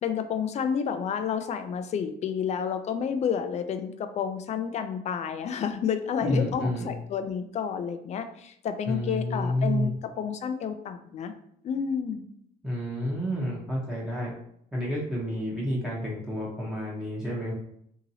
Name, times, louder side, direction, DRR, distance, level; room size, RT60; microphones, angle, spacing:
voice 1, 0.0-11.3 11.6-12.2, left 7 dB, 40° left, 8 dB, 0.4 m, -30 dB
voice 2, 6.2-6.9 8.9-9.9 12.6-14.3 14.7-17.5, equal, 5° right, -6 dB, 0.8 m, -29 dB
2.8 x 2.7 x 2.7 m, 0.69 s
cardioid pair, 110°, 17 cm